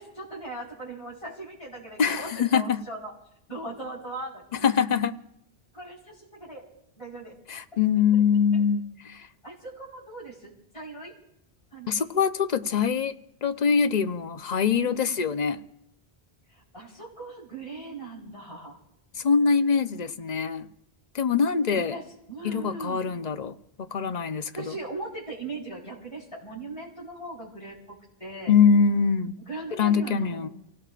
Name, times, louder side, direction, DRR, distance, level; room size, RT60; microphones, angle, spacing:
voice 1, 0.0-3.1 3.5-4.8 5.7-6.6 7.0-7.3 8.5-8.6 9.4-11.1 11.7-12.0 14.8-15.3 16.5-18.8 21.7-23.0 24.3-28.5 29.5-30.5, right 2 dB, 30° left, 4.6 m, -39 dB
voice 2, 2.0-2.8 4.5-5.1 7.5-9.3 11.9-13.1 13.4-15.6 19.1-20.7 21.1-22.0 22.4-24.5 28.5-29.4 29.7-30.5, left 6 dB, 45° left, 0.8 m, -23 dB
30.0 x 17.5 x 2.5 m
omnidirectional pair, 1.1 m